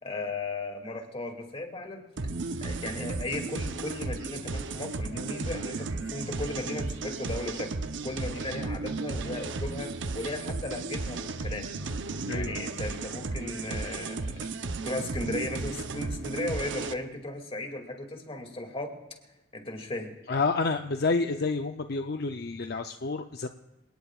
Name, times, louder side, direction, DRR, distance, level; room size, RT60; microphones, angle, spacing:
voice 1, 0.0-2.0 2.6-7.7 8.0-11.7 12.3-14.5 14.8-18.9 19.5-20.1, left 2 dB, 30° left, 3 dB, 2.4 m, -36 dB
sound 1, 2.2-16.9, right 3 dB, 75° right, 0.8 m, -34 dB
voice 2, 20.3-23.5, left 3 dB, 60° left, 6 dB, 0.6 m, -29 dB
27.5 x 18.5 x 2.4 m, 1.0 s
head